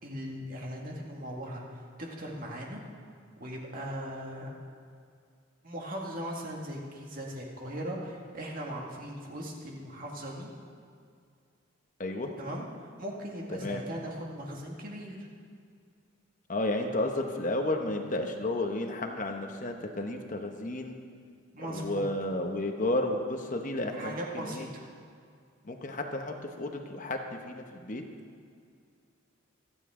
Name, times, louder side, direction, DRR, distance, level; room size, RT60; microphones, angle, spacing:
voice 1, 0.0-1.6 2.0-2.8 3.4-4.5 5.6-10.5 12.4-12.7 13.0-15.2 21.5-22.0 23.9-24.8, equal, 45° right, -1 dB, 2.0 m, -39 dB
voice 2, 12.0-12.3 13.5-13.8 16.5-21.0 21.7-24.7 25.6-28.0, left 2 dB, 40° left, 4 dB, 0.9 m, -32 dB
26.0 x 9.2 x 3.7 m, 2.3 s
head